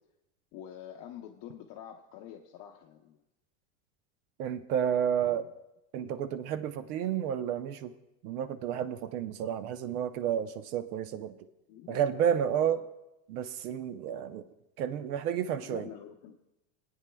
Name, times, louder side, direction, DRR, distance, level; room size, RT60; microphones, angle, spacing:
voice 1, 0.5-3.2 5.2-5.4 5.9-6.1 11.7-12.8 15.6-16.4, left 10 dB, 45° left, 2 dB, 0.7 m, -46 dB
voice 2, 4.4-5.5 5.9-7.9 8.2-11.4 11.9-12.8 13.3-14.5 14.8-15.9, right 9 dB, 80° right, 12 dB, 0.8 m, -31 dB
20.5 x 8.9 x 2.3 m, 0.93 s
supercardioid pair, 140°, 44 cm